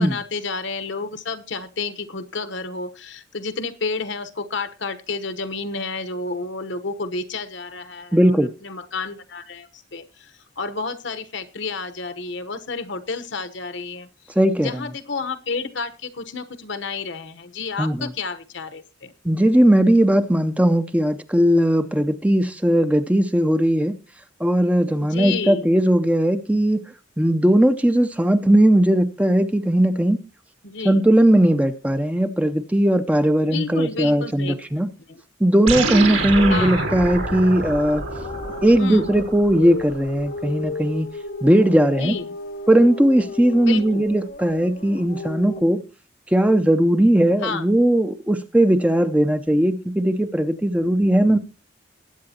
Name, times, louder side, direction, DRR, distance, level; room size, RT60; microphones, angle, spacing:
voice 1, 0.0-14.1 14.6-19.1 25.0-25.7 30.6-31.0 33.5-34.8 35.1-35.2 36.5-36.9 38.8-39.1 42.0-42.2 43.6-44.0 47.4-47.7, left 4 dB, 60° left, 1.0 m, -30 dB
voice 2, 8.1-8.5 14.4-14.7 17.8-18.0 19.2-24.0 24.4-26.8 27.2-30.2 30.8-34.9 35.4-38.0 38.6-41.1 41.4-42.2 42.7-45.8 46.3-51.4, right 1 dB, 5° right, 0.6 m, -18 dB
sound 1, 35.7-40.3, right 3 dB, 85° right, 4.1 m, -27 dB
sound 2, 36.3-45.6, left 2 dB, 45° left, 0.6 m, -34 dB
21.0 x 8.7 x 2.8 m
head